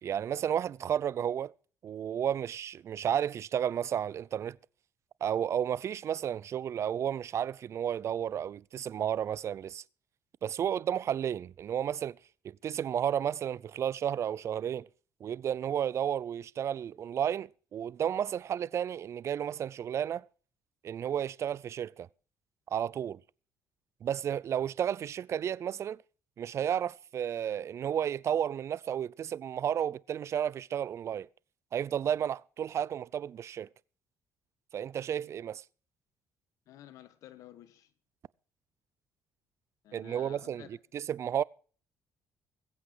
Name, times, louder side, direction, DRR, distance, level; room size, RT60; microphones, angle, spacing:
voice 1, 0.0-1.5 1.8-4.6 5.2-9.8 10.4-12.2 12.4-14.9 15.2-20.3 20.8-22.1 22.7-23.2 24.0-26.0 26.4-31.3 31.7-33.7 34.7-35.6 39.9-41.4, right 9 dB, 55° right, 0.5 m, -32 dB
voice 2, 36.7-37.9 39.8-40.7, left 12 dB, 75° left, 1.3 m, -52 dB
21.0 x 8.4 x 4.8 m
supercardioid pair, 75°, 6 cm